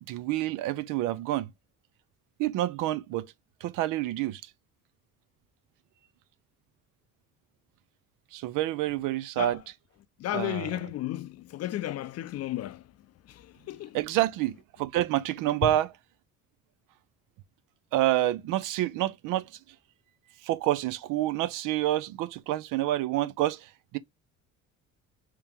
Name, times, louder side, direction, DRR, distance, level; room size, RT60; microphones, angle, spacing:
voice 1, 0.1-1.5 2.4-3.3 3.6-4.4 8.3-9.6 10.3-10.7 13.9-15.9 17.9-19.5 20.4-24.0, right 14 dB, 70° right, 0.5 m, -28 dB
voice 2, 10.2-12.8 13.3-14.0 15.6-15.7, left 13 dB, 50° left, 0.5 m, -33 dB
2.9 x 2.9 x 3.5 m
supercardioid pair, 75°, 33 cm